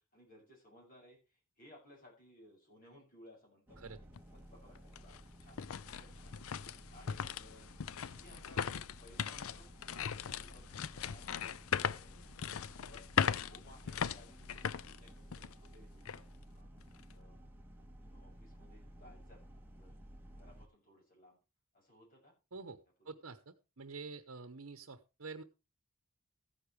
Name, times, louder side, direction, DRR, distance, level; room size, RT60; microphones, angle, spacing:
voice 1, 0.0-3.9 4.3-5.6 5.9-6.3 6.9-7.7 8.1-8.7 9.0-12.3 12.7-16.7 17.1-17.5 18.0-19.4 19.7-20.0 20.3-21.4 21.7-22.3 23.0-23.2, left 1 dB, 40° left, -2 dB, 7.3 m, -61 dB
sound 1, 3.7-20.7, equal, 10° right, 1.6 m, -55 dB
sound 2, 4.1-4.2 4.8-15.7 16.1-16.2 16.8-17.1, left 7 dB, 75° left, 0.5 m, -39 dB
voice 2, 23.0-25.4, right 4 dB, 70° right, 8 dB, 0.9 m, -47 dB
14.5 x 10.0 x 3.3 m, 0.28 s
head